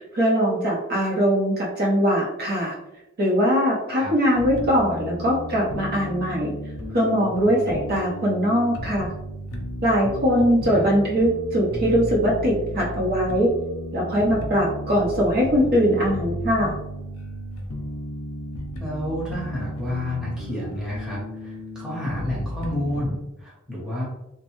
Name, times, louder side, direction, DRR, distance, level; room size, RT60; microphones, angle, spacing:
voice 1, 0.0-2.7 3.2-6.5 6.9-9.1 9.8-13.5 13.9-16.7, equal, 45° right, -4 dB, 0.7 m, -21 dB
sound 1, 4.4-23.1, left 1 dB, 90° left, 0.6 m, -34 dB
voice 2, 18.8-24.0, left 1 dB, 5° right, -7 dB, 0.8 m, -30 dB
3.1 x 2.2 x 3.0 m, 0.90 s
head